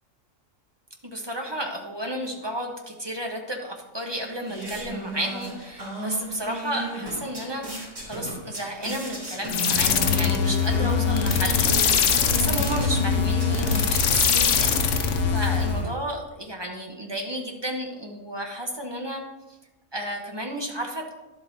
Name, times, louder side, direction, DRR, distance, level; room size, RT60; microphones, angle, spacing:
voice 1, 1.1-19.2 19.9-21.1, right 1 dB, 25° right, 2 dB, 0.8 m, -32 dB
sound 1, 4.0-14.5, right 1 dB, 70° right, 3.3 m, -35 dB
sound 2, 9.5-15.8, left 8 dB, 70° left, 1.0 m, -23 dB
sound 3, 10.6-15.9, right 4 dB, 50° right, 1.4 m, -31 dB
11.0 x 7.7 x 2.6 m, 1.0 s
omnidirectional pair, 1.4 m